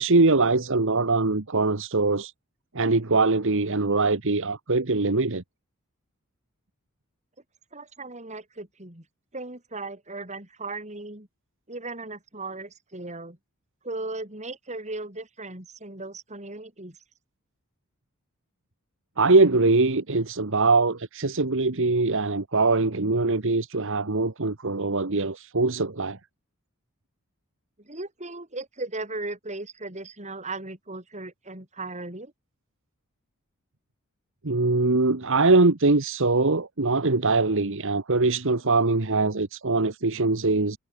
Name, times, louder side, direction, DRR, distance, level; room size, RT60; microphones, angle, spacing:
voice 1, 0.0-2.3 2.7-5.4 19.2-26.2 34.4-40.8, right 3 dB, 60° right, 1.4 m, -22 dB
voice 2, 7.7-9.0 9.3-11.3 11.7-13.4 13.8-17.0 27.8-32.3, right 2 dB, 30° right, 6.2 m, -37 dB
head